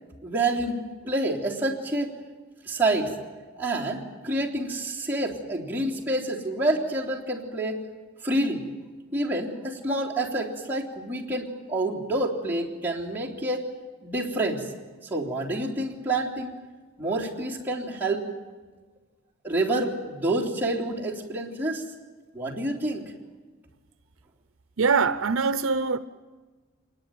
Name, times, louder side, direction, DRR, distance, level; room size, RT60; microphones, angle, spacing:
voice 1, 0.2-0.8 1.0-2.1 2.7-3.1 3.6-7.8 8.2-8.6 9.1-13.6 14.0-14.6 15.1-16.5 17.0-18.2 19.4-21.8 22.3-23.0, right 2 dB, 10° right, 3.4 m, -28 dB
voice 2, 24.8-26.0, right 5 dB, 65° right, 0.7 m, -23 dB
25.5 x 21.0 x 9.6 m
head